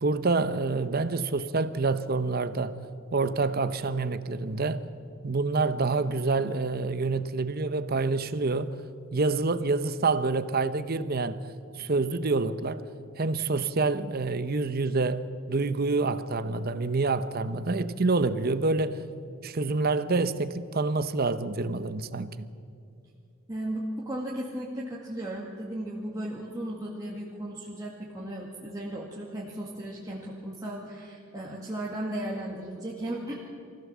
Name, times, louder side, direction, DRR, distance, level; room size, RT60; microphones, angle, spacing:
voice 1, 0.0-2.8 3.1-4.8 5.2-8.8 9.1-11.4 11.8-12.8 13.2-19.0 19.4-22.5, right 3 dB, 45° right, 0.7 m, -27 dB
voice 2, 23.5-33.4, right 1 dB, 15° right, 2.0 m, -35 dB
23.5 x 16.0 x 7.3 m
head